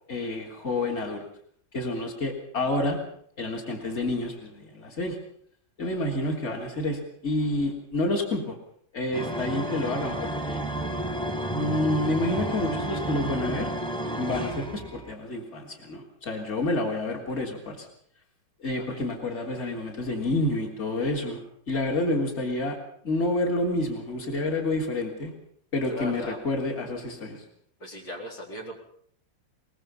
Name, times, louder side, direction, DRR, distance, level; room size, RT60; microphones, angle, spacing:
voice 1, 0.1-1.2 1.7-3.0 3.4-5.2 5.8-8.6 8.9-10.6 11.5-13.7 14.2-17.9 18.6-21.4 21.7-22.8 23.0-25.3 25.7-27.4, left 2 dB, 35° left, 2 dB, 3.6 m, -29 dB
sound 1, 9.1-15.1, right 1 dB, 5° left, 1.5 m, -31 dB
voice 2, 25.9-26.4 27.8-28.8, left 1 dB, 75° left, 0 dB, 4.9 m, -38 dB
23.0 x 21.0 x 5.6 m, 0.64 s
omnidirectional pair, 2.0 m